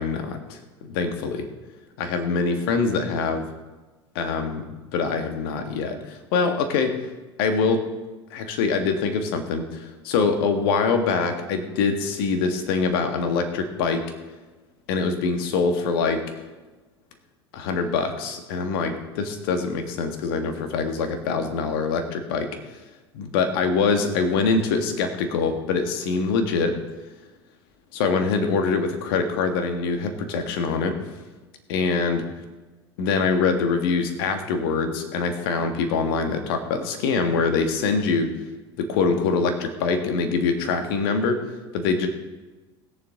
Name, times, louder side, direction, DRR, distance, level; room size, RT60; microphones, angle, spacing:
voice 1, 0.0-1.5 2.0-3.5 4.2-4.6 4.9-6.9 7.4-7.8 8.3-14.0 14.9-16.2 17.5-22.5 23.1-26.8 27.9-31.0 31.7-32.2 33.0-38.3 38.9-41.4 41.7-42.1, left 4 dB, 60° left, 6 dB, 1.8 m, -24 dB
20.0 x 7.3 x 3.8 m, 1.2 s
figure-of-eight pair, 75°, 14 cm